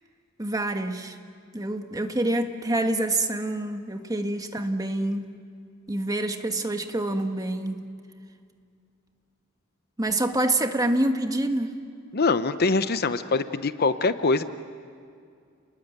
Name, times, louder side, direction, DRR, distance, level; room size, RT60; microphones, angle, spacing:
voice 1, 0.4-1.2 1.5-5.2 5.9-7.8 10.0-11.8, right 1 dB, 15° right, 6 dB, 1.4 m, -26 dB
voice 2, 12.1-14.4, left 3 dB, 50° left, 11 dB, 0.8 m, -23 dB
29.5 x 20.5 x 9.0 m, 2.3 s
head